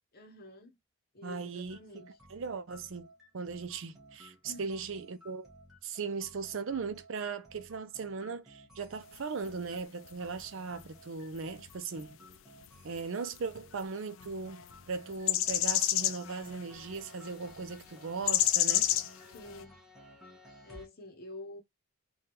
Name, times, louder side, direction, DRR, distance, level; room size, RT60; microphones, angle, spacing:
voice 1, 0.1-0.7 1.1-2.1 4.4-4.8 19.3-19.8 20.6-21.6, left 2 dB, 45° left, 0.8 m, -48 dB
voice 2, 1.2-2.0 2.3-5.5 5.8-12.2 12.8-18.9, right 4 dB, 65° right, 0.5 m, -38 dB
sound 1, 1.6-20.9, equal, ahead, 1.1 m, -56 dB
sound 2, 9.1-9.4 9.8-10.1 10.4-10.5 11.3-11.4 11.7-11.8 13.0-13.1 13.3-13.4 13.8-13.9 14.2-14.7 15.1-16.9 17.3-17.4 18.3-19.6, left 12 dB, 65° left, 0.3 m, -28 dB
3.5 x 2.3 x 2.9 m
head